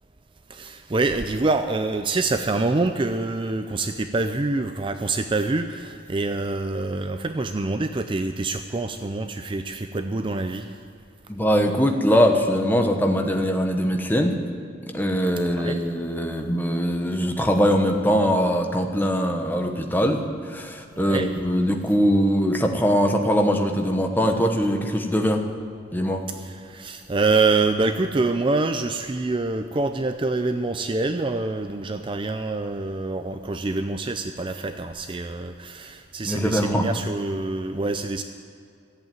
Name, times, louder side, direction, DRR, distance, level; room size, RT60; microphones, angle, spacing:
voice 1, 0.5-10.7 15.5-15.8 21.0-21.3 26.3-38.2, right 3 dB, 25° right, 8 dB, 0.4 m, -26 dB
voice 2, 11.3-14.4 14.9-25.5 25.9-26.2 36.2-36.9, equal, 10° left, 4 dB, 1.0 m, -22 dB
14.5 x 8.1 x 9.0 m, 2.4 s
head